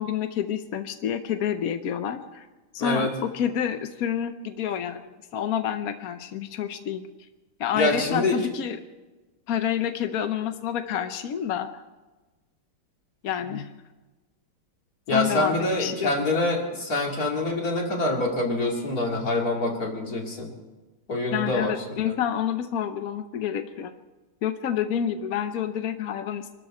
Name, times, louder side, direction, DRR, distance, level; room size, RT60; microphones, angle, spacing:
voice 1, 0.0-2.5 2.7-7.0 7.6-8.8 9.5-11.8 13.2-13.7 15.1-16.1 21.3-23.9 24.4-26.5, left 9 dB, 65° left, 8 dB, 0.9 m, -28 dB
voice 2, 2.8-3.1 7.7-8.4 15.1-20.5 21.1-22.1, left 2 dB, 45° left, 0 dB, 3.0 m, -26 dB
24.5 x 13.0 x 4.4 m, 1.2 s
omnidirectional pair, 2.4 m